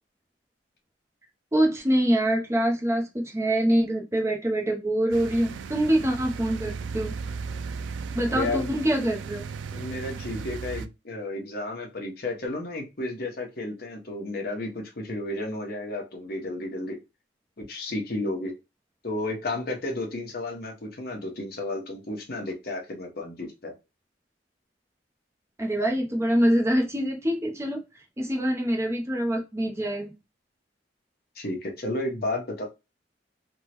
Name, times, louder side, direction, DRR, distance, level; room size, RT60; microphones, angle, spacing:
voice 1, 1.5-7.1 8.1-9.4 25.6-27.8 28.2-30.1, right 1 dB, 15° right, 0.6 m, -25 dB
sound 1, 5.1-10.9, right 5 dB, 90° right, 0.3 m, -36 dB
voice 2, 8.3-8.8 9.7-17.0 17.6-18.5 19.0-23.7 31.4-32.7, left 2 dB, 55° left, 1.0 m, -32 dB
3.6 x 2.1 x 2.9 m
head